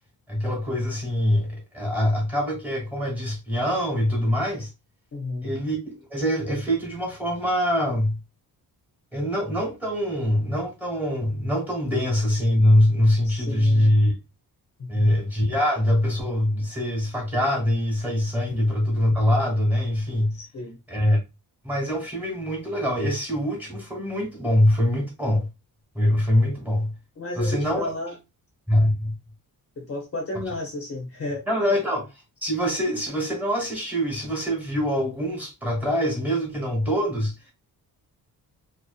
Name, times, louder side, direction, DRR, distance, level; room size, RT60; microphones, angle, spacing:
voice 1, 0.3-4.7 5.4-8.2 9.1-14.1 14.9-20.3 20.9-21.2 21.6-25.5 25.9-26.9 27.3-27.9 28.7-29.1 31.5-32.0 32.4-37.3, left 1 dB, 5° right, 1.1 m, -23 dB
voice 2, 5.1-5.5 13.2-14.0 14.8-15.1 20.3-20.8 27.2-28.2 29.8-31.8, left 2 dB, 40° left, 0.7 m, -33 dB
2.7 x 2.2 x 2.3 m
wide cardioid pair, 130°, 38 cm